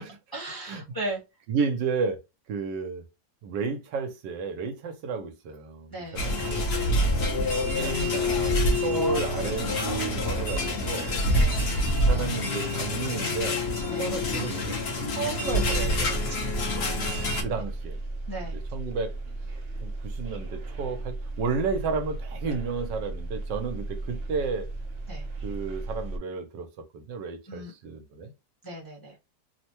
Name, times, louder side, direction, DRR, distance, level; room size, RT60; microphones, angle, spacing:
voice 1, 0.3-1.2 5.9-6.5 6.9-7.2 11.3-11.6 13.9-14.1 16.3-17.4 18.3-18.6 25.1-25.3 27.5-27.7 28.6-29.2, right 1 dB, 15° left, 0.8 m, -38 dB
voice 2, 1.5-2.2 2.5-3.0 3.4-5.9 6.2-6.7 7.8-11.1 12.1-13.6 13.9-14.8 15.2-16.4 17.4-18.0 18.5-19.1 19.8-24.7 25.4-26.7 26.9-28.3, right 5 dB, 80° right, 1.3 m, -32 dB
sound 1, 6.2-17.4, left 1 dB, 45° left, 0.9 m, -26 dB
sound 2, 15.7-26.2, right 2 dB, 55° right, 0.6 m, -36 dB
3.4 x 2.1 x 2.9 m
omnidirectional pair, 1.9 m